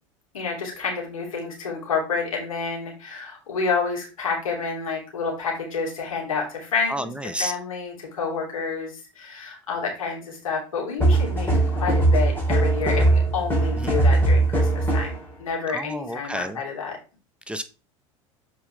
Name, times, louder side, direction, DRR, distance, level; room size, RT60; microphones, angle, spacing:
voice 1, 0.3-17.0, left 5 dB, 85° left, -1 dB, 3.0 m, -29 dB
voice 2, 6.9-7.5 13.8-14.0 15.7-16.6 17.5-17.6, right 1 dB, 5° right, 11 dB, 0.7 m, -31 dB
sound 1, 11.0-15.2, right 2 dB, 10° left, 3.9 m, -20 dB
7.2 x 5.1 x 3.3 m, 0.32 s
hypercardioid pair, 80°, 17 cm